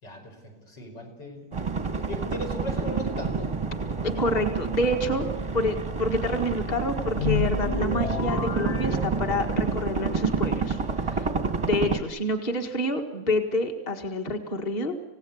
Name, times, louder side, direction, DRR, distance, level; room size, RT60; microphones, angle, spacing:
voice 1, 0.0-1.5 2.1-3.5, equal, 75° left, 1 dB, 6.0 m, -37 dB
sound 1, 1.5-12.0, right 5 dB, 20° right, 0.9 m, -29 dB
voice 2, 4.2-11.3 11.6-14.9, left 1 dB, 25° left, 4 dB, 1.8 m, -28 dB
sound 2, 7.1-9.7, left 5 dB, 50° left, 0.4 m, -30 dB
27.5 x 17.0 x 8.2 m, 1.2 s
omnidirectional pair, 1.9 m